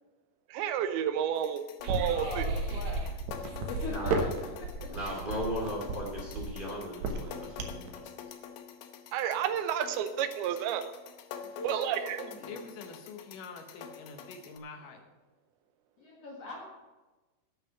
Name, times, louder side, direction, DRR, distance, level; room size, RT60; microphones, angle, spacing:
voice 1, 0.5-2.5 9.1-10.9 11.6-12.2, right 9 dB, 90° right, 10 dB, 2.7 m, -31 dB
sound 1, 1.4-14.6, left 8 dB, 90° left, 2.9 m, -47 dB
sound 2, 1.8-7.9, right 3 dB, 65° right, 2.1 m, -33 dB
voice 2, 2.0-3.1 3.7-4.3 4.6-4.9 11.6-12.6 16.0-16.7, left 2 dB, 50° left, 0 dB, 2.2 m, -41 dB
voice 3, 3.8-4.3 4.9-8.0, equal, 15° right, -2 dB, 2.1 m, -37 dB
voice 4, 12.4-15.0, left 4 dB, 70° left, 5 dB, 2.4 m, -46 dB
11.0 x 6.5 x 7.5 m, 1.2 s
omnidirectional pair, 4.4 m